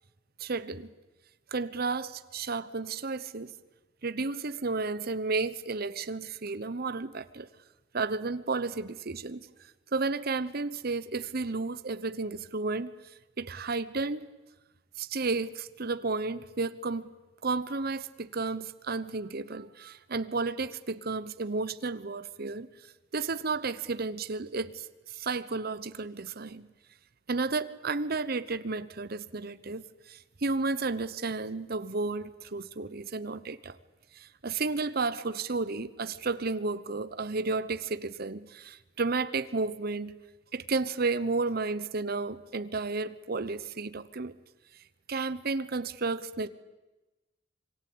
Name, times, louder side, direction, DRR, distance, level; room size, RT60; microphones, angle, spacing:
voice 1, 0.4-0.9 1.5-3.5 4.0-7.5 7.9-9.5 9.9-12.9 13.4-14.3 15.0-17.1 17.4-22.7 23.1-26.7 27.3-33.8 34.1-40.1 40.5-44.3 45.1-46.5, right 3 dB, 55° right, 1.0 m, -32 dB
25.5 x 23.5 x 8.7 m
head